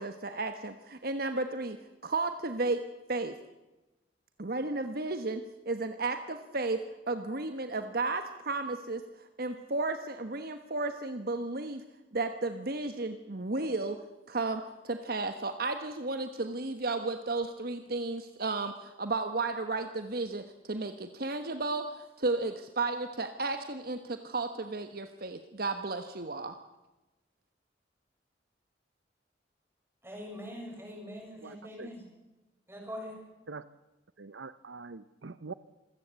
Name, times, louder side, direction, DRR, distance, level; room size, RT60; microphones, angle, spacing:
voice 1, 0.0-1.8 2.0-2.8 3.1-3.3 4.4-6.8 7.1-9.0 9.4-11.8 12.1-14.0 14.3-26.6, right 3 dB, 55° right, 8 dB, 1.3 m, -33 dB
voice 2, 30.0-32.0 32.7-33.2, equal, 15° right, 0 dB, 6.8 m, -43 dB
voice 3, 31.4-31.9 33.5-33.6 34.2-35.5, right 4 dB, 85° right, 15 dB, 0.8 m, -44 dB
26.5 x 16.5 x 8.2 m, 1.0 s
head